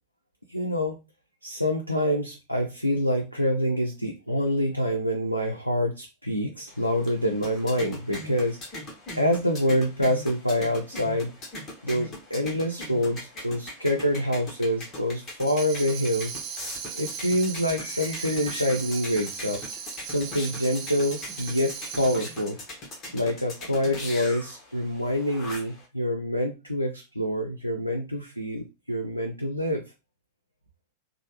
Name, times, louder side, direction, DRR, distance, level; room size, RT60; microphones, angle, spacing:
voice 1, 0.5-1.0 1.4-8.6 9.1-11.3 11.8-16.4 16.9-19.6 20.1-22.6 23.1-29.8, equal, 90° left, 1 dB, 0.4 m, -26 dB
sound 1, 6.7-25.9, left 1 dB, 30° left, 0.9 m, -41 dB
Tambourine, 15.4-22.5, right 7 dB, 35° right, 0.4 m, -38 dB
3.1 x 2.2 x 2.8 m, 0.26 s
figure-of-eight pair, 90°, 0 cm